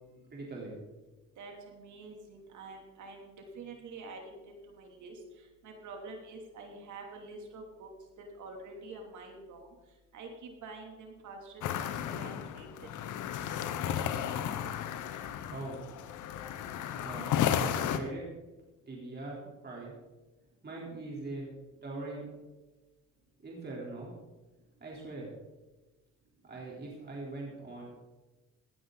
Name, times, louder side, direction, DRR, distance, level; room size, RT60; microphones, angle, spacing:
voice 1, 0.3-0.8 15.5-15.8 17.0-17.4 17.8-18.3 18.9-19.9 20.6-21.5 21.8-22.3 23.4-24.1 24.8-25.3 26.4-27.8, right 2 dB, 35° right, -3 dB, 3.7 m, -41 dB
voice 2, 1.4-4.4 4.7-5.2 5.6-7.9 8.4-9.7 10.1-11.9 12.1-12.9, right 3 dB, 75° right, 2 dB, 2.9 m, -47 dB
sound 1, 11.6-18.0, left 9 dB, 85° left, 1.0 m, -33 dB
17.5 x 9.8 x 4.0 m, 1.1 s
cardioid pair, 90°, 30 cm